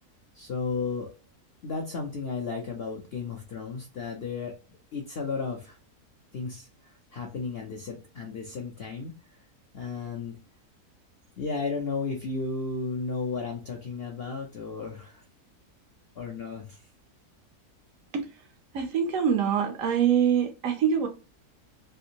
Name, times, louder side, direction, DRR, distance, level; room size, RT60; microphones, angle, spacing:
voice 1, 0.3-1.1 1.6-4.5 4.9-5.8 6.3-9.1 9.7-10.4 11.4-15.2 16.2-16.8, left 4 dB, 65° left, 0.6 m, -34 dB
voice 2, 18.7-21.1, right 8 dB, 70° right, 0.9 m, -24 dB
3.4 x 2.5 x 2.7 m
omnidirectional pair, 1.6 m